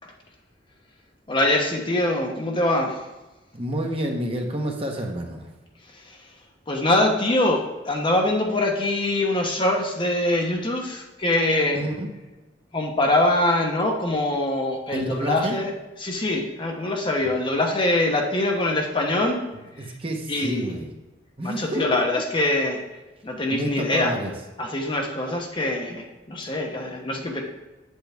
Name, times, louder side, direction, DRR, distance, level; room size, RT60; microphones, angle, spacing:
voice 1, 1.3-2.9 6.7-11.8 12.7-15.7 16.0-19.4 20.3-20.8 21.4-22.8 23.2-24.1 24.6-27.4, left 1 dB, 30° left, 1 dB, 1.0 m, -23 dB
voice 2, 3.5-5.5 11.7-12.1 14.9-15.6 19.5-20.9 21.4-21.8 22.1-22.2 23.5-24.3, right 1 dB, 30° right, 2 dB, 1.1 m, -29 dB
8.2 x 7.7 x 3.5 m, 1.1 s
head